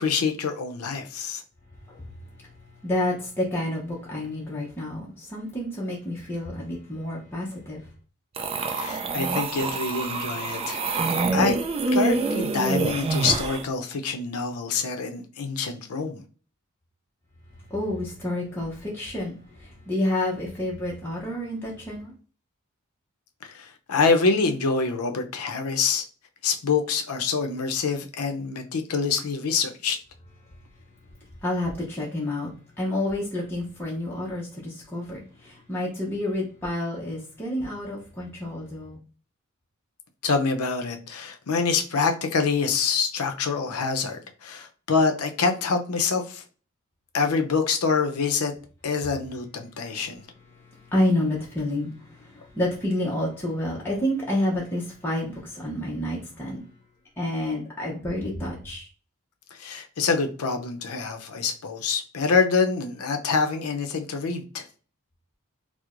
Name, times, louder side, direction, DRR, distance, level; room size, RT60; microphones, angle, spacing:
voice 1, 0.0-1.4 8.7-11.0 11.3-11.6 11.9-16.2 23.4-26.0 26.4-30.0 40.2-46.4 47.1-48.5 48.8-50.2 59.6-64.6, left 5 dB, 85° left, 0.6 m, -26 dB
voice 2, 2.8-7.8 17.7-22.1 31.4-32.5 32.8-39.0 50.6-56.6 57.2-58.9, left 1 dB, 10° left, 0.6 m, -29 dB
sound 1, 8.4-13.6, right 3 dB, 25° right, 0.3 m, -26 dB
4.5 x 2.0 x 2.4 m
head